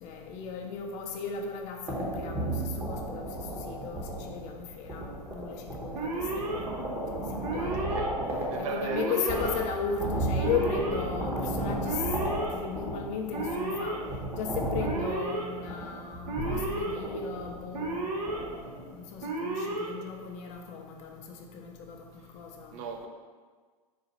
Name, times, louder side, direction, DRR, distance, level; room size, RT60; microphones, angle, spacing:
voice 1, 0.0-6.7 7.1-7.8 8.6-12.1 12.5-14.0 14.3-22.1 22.3-22.8, left 6 dB, 35° left, 3 dB, 0.5 m, -36 dB
sound 1, 1.9-19.0, right 1 dB, 10° right, 0.8 m, -35 dB
Alarm, 5.9-6.6 7.4-8.1 8.9-9.6 10.4-11.0 11.8-12.5 13.3-14.0 14.8-15.4 16.3-16.9 17.7-18.4 19.2-19.9, right 2 dB, 70° right, 0.9 m, -32 dB
voice 2, 7.5-8.2 8.5-9.4 22.7-23.1, right 4 dB, 50° right, 4 dB, 0.5 m, -37 dB
4.0 x 2.4 x 4.0 m, 1.5 s
hypercardioid pair, 125°, 20 cm